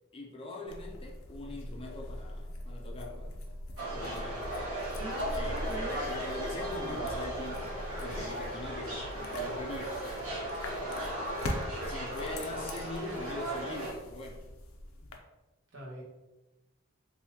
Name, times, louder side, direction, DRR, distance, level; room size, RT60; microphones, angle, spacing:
voice 1, 0.1-3.4 3.9-4.5 5.4-10.1 11.8-14.4, left 2 dB, 25° left, 0 dB, 0.5 m, -42 dB
sound 1, 0.7-15.2, left 1 dB, 90° left, 0.5 m, -42 dB
sound 2, 3.8-13.9, right 1 dB, 80° right, 1.2 m, -37 dB
voice 2, 5.0-6.1 6.8-7.0 15.7-16.0, right 1 dB, 60° right, -3 dB, 1.0 m, -41 dB
3.5 x 2.6 x 2.8 m, 1.1 s
head